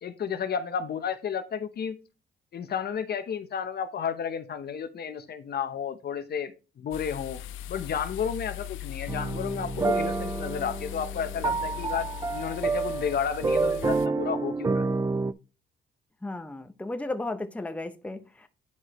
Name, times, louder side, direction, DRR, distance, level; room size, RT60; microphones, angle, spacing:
voice 1, 0.0-2.0 2.5-7.4 7.7-14.9, left 7 dB, 55° left, 0.9 m, -32 dB
sound 1, 6.9-14.1, left 13 dB, 85° left, 0.4 m, -39 dB
sound 2, 9.1-15.3, right 4 dB, 15° right, 0.4 m, -29 dB
voice 2, 16.2-18.5, left 2 dB, 5° left, 0.7 m, -34 dB
9.7 x 4.8 x 3.1 m
cardioid pair, 90°, 20 cm